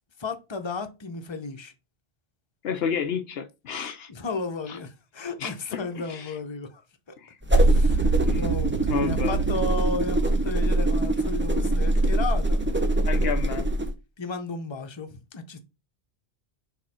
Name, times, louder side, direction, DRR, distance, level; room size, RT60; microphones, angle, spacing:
voice 1, 0.2-1.7 4.1-7.2 7.5-12.6 14.2-15.6, left 3 dB, 30° left, 0.8 m, -34 dB
voice 2, 2.6-4.1 4.7-4.8 5.4-6.4 7.2-7.4 8.2-8.5 8.9-9.4 13.0-13.7, left 7 dB, 70° left, 0.9 m, -31 dB
sound 1, 7.4-13.9, right 1 dB, 10° right, 0.7 m, -23 dB
sound 2, 7.6-11.5, right 11 dB, 70° right, 0.8 m, -30 dB
6.5 x 3.6 x 4.3 m
omnidirectional pair, 1.1 m